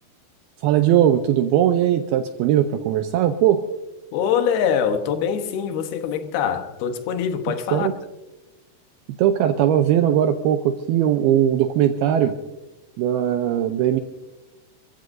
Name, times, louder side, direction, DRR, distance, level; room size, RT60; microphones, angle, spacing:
voice 1, 0.6-3.6 7.7-7.9 9.2-12.4 13.0-14.0, right 10 dB, 85° right, 2.2 m, -19 dB
voice 2, 4.1-7.9, left 7 dB, 70° left, 2.7 m, -23 dB
28.5 x 15.0 x 2.6 m
omnidirectional pair, 5.2 m